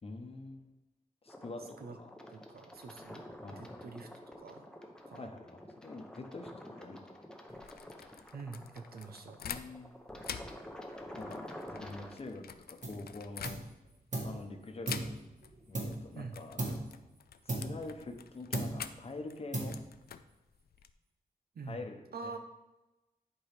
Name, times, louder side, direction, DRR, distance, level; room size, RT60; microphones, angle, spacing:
voice 1, 0.0-0.7 1.2-1.6 2.0-2.1 3.4-3.8 5.2-7.2 9.4-9.9 11.2-11.4 11.7-13.6 14.2-15.2 15.7-16.9 17.4-19.8 21.7-22.4, left 3 dB, 40° left, 4 dB, 0.9 m, -45 dB
sound 1, 1.3-12.1, left 1 dB, 5° left, 0.8 m, -49 dB
voice 2, 2.3-3.2 3.5-4.1 4.4-4.7 5.1-5.3 8.3-9.4 16.1-16.4 21.5-21.8 22.1-22.4, right 4 dB, 85° right, 6 dB, 0.8 m, -45 dB
sound 2, 7.5-9.9 10.2-14.0 14.8-15.5 15.8-16.0 16.3-20.9, left 8 dB, 85° left, 0.4 m, -46 dB
sound 3, 12.8-13.1 13.4-14.4 14.9-16.2 16.6-17.0 17.5-18.2 18.5-19.0 19.5-20.1, right 2 dB, 50° right, 1.7 m, -37 dB
10.5 x 4.7 x 3.4 m, 1.0 s
wide cardioid pair, 130°, 16 cm